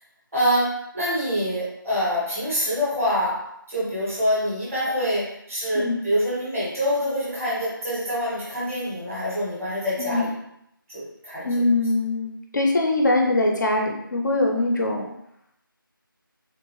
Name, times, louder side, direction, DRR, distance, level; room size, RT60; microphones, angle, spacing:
voice 1, 0.3-10.3 10.9-11.5, equal, 5° right, -9 dB, 0.6 m, -25 dB
voice 2, 10.0-10.3 11.4-15.1, left 2 dB, 55° left, 1 dB, 0.5 m, -22 dB
3.4 x 2.4 x 3.1 m, 0.77 s
figure-of-eight pair, 170°, 12 cm